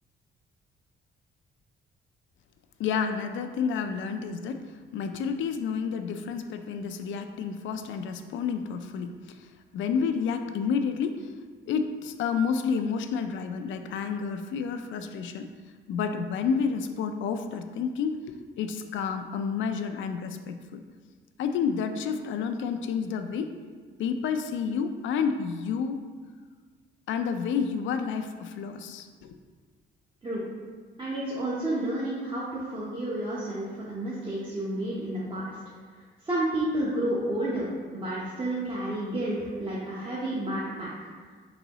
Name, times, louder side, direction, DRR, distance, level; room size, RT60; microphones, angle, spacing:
voice 1, 2.8-11.3 11.7-15.5 15.9-20.8 21.4-23.5 24.0-26.0 27.1-29.4, left 6 dB, 75° left, 7 dB, 0.4 m, -30 dB
voice 2, 31.0-35.5 36.2-37.7 37.9-40.9, right 1 dB, 25° right, -7 dB, 0.9 m, -30 dB
4.5 x 3.9 x 3.0 m, 1.5 s
cardioid pair, 90°, 20 cm